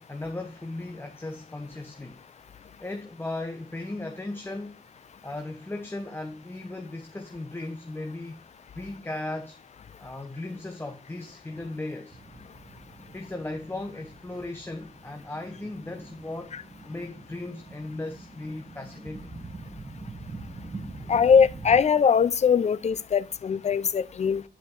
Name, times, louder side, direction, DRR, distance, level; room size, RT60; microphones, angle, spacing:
voice 1, 0.0-2.2 2.8-4.8 5.2-8.4 8.7-9.6 10.0-12.2 13.1-19.3, left 2 dB, 15° left, 0.9 m, -37 dB
sound 1, 12.1-21.8, right 3 dB, 25° right, 1.3 m, -44 dB
voice 2, 21.1-24.4, left 6 dB, 40° left, 0.5 m, -21 dB
10.5 x 5.1 x 3.7 m
wide cardioid pair, 110°, 17 cm